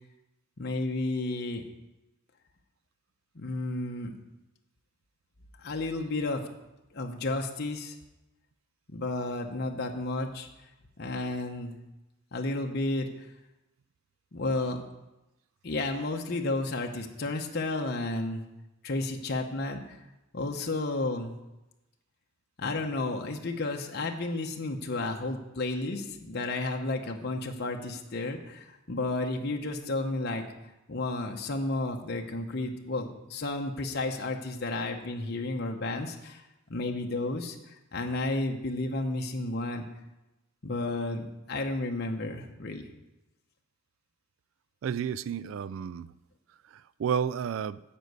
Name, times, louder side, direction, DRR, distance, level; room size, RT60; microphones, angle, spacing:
voice 1, 0.6-1.6 3.3-4.1 5.6-6.4 6.9-7.9 8.9-10.5 11.0-11.8 12.3-13.1 14.3-14.8 15.6-18.4 18.8-20.0 20.3-21.3 22.6-30.4 30.9-36.4 36.7-37.6 37.9-39.8 40.6-42.9, left 2 dB, 50° left, 2 dB, 0.9 m, -32 dB
voice 2, 44.8-46.1 46.7-47.8, right 8 dB, 65° right, 17 dB, 0.3 m, -31 dB
10.0 x 5.3 x 8.0 m, 0.97 s
head